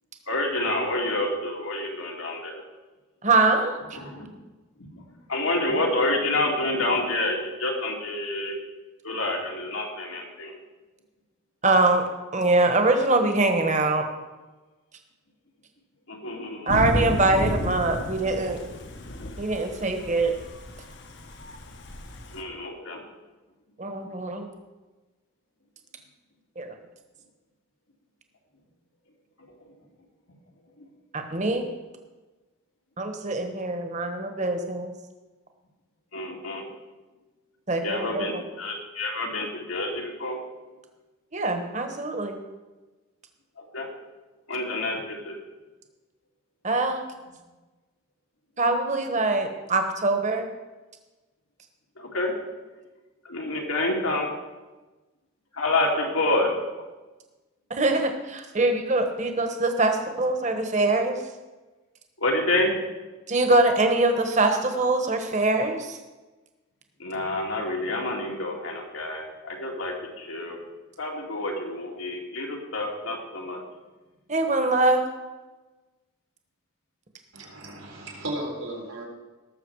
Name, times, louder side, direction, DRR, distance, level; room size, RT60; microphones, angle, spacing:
voice 1, 0.3-2.6 3.9-4.3 4.8-5.0 5.3-8.6 9.0-10.5 16.1-16.8 22.3-23.0 30.8-30.9 36.1-36.7 37.8-40.4 43.6-43.9 44.5-45.4 52.0-52.3 53.2-54.3 55.5-56.5 62.2-62.7 67.0-70.6 71.0-73.6, left 2 dB, 85° left, -1 dB, 2.5 m, -28 dB
voice 2, 3.2-4.0 11.6-12.0 12.3-14.1 16.7-18.7 19.4-20.3 23.8-24.5 26.6-26.7 31.1-31.6 33.0-34.9 37.7-38.4 41.3-42.4 46.6-47.0 48.6-50.5 57.7-61.2 63.3-66.0 74.3-75.0, right 2 dB, 35° right, 5 dB, 1.3 m, -23 dB
Thunder / Rain, 16.7-22.4, left 1 dB, 55° left, 1.1 m, -32 dB
voice 3, 77.3-79.0, right 1 dB, 85° right, -2 dB, 3.8 m, -35 dB
18.0 x 7.1 x 4.8 m, 1.2 s
head